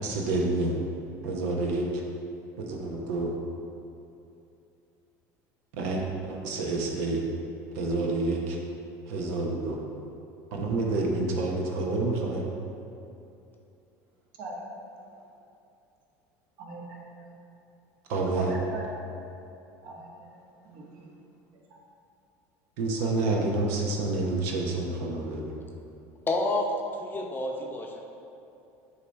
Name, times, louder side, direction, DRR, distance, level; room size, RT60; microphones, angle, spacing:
voice 1, 0.0-0.8 1.2-1.9 2.6-3.3 5.8-7.2 7.7-8.6 9.1-9.8 10.5-12.5 18.1-18.5 22.8-25.5, right 2 dB, 80° right, -1 dB, 0.9 m, -28 dB
voice 2, 14.4-14.9 16.6-17.4 18.3-18.9 19.8-21.1 21.5-21.6, right 2 dB, 60° right, -3 dB, 1.4 m, -40 dB
voice 3, 26.3-26.7 27.0-28.0, left 2 dB, 25° left, 1 dB, 0.7 m, -29 dB
7.8 x 2.8 x 4.6 m, 2.7 s
supercardioid pair, 110°, 8 cm